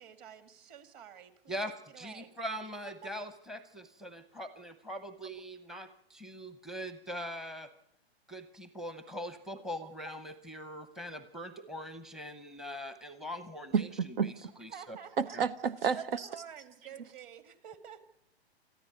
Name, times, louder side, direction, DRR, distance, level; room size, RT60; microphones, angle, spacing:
voice 1, 0.0-1.6 1.9-2.3 2.8-3.1 13.2-13.4 14.7-15.4 15.9-18.0, right 8 dB, 30° right, 2.0 m, -49 dB
voice 2, 1.5-7.7 8.3-13.9 14.2-14.3 14.6-15.0 15.3-15.4, equal, ahead, 0.8 m, -42 dB
voice 3, 13.7-14.3 15.2-16.3, right 6 dB, 60° right, 0.8 m, -30 dB
27.0 x 14.0 x 9.4 m
figure-of-eight pair, 120°, 33 cm